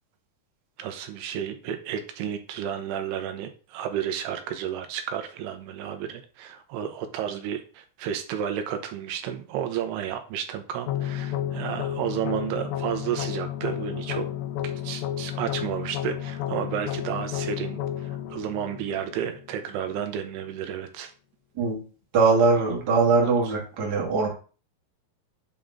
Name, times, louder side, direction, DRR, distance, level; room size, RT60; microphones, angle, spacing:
voice 1, 0.8-14.3 14.6-21.1, right 9 dB, 85° right, 7 dB, 2.8 m, -32 dB
sound 1, 10.9-19.9, left 11 dB, 80° left, 2.1 m, -32 dB
voice 2, 22.1-24.3, right 4 dB, 50° right, -2 dB, 1.2 m, -21 dB
8.5 x 3.8 x 3.6 m, 0.37 s
omnidirectional pair, 4.8 m